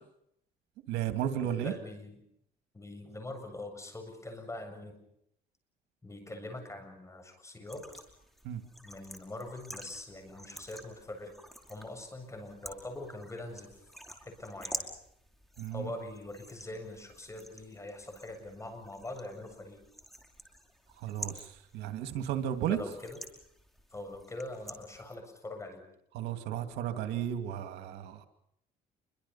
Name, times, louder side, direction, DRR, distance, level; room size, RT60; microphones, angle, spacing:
voice 1, 0.9-1.7 8.4-8.6 15.6-15.9 21.0-22.8 26.1-28.3, right 10 dB, 90° right, 8 dB, 2.5 m, -34 dB
voice 2, 1.4-2.2 2.7-5.0 6.0-8.0 8.8-11.4 11.7-13.9 14.2-14.9 15.7-19.8 22.7-23.2 23.9-25.9, left 2 dB, 15° left, 6 dB, 7.6 m, -43 dB
sound 1, 7.7-25.2, equal, ahead, 5.2 m, -49 dB
28.0 x 24.0 x 5.8 m, 0.75 s
cardioid pair, 110°, 17 cm